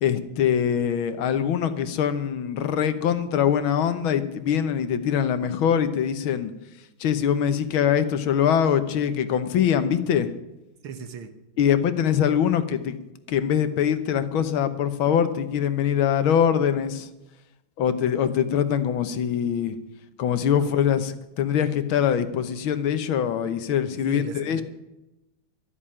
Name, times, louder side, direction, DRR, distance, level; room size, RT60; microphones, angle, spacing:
voice 1, 0.0-6.5 7.0-10.3 11.6-13.0 13.3-17.1 17.8-19.8 20.2-24.6, left 8 dB, 75° left, 11 dB, 1.7 m, -23 dB
voice 2, 10.8-11.3 20.6-20.7 24.1-24.6, right 6 dB, 75° right, 9 dB, 2.0 m, -37 dB
13.0 x 7.5 x 9.9 m, 0.97 s
omnidirectional pair, 2.3 m